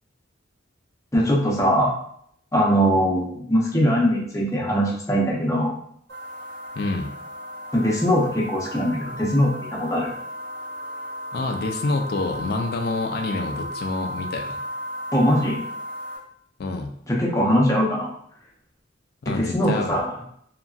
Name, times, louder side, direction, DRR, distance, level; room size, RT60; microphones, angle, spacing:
voice 1, 1.1-1.9 2.5-5.7 7.7-10.1 15.1-15.6 17.1-18.1 19.3-20.1, equal, 15° left, -4 dB, 0.6 m, -21 dB
sound 1, 6.1-16.2, equal, 60° right, 0.8 m, -35 dB
voice 2, 6.8-7.1 11.3-14.6 16.6-16.9 19.2-20.0, left 3 dB, 55° left, 4 dB, 0.3 m, -27 dB
2.9 x 2.5 x 2.4 m, 0.68 s
head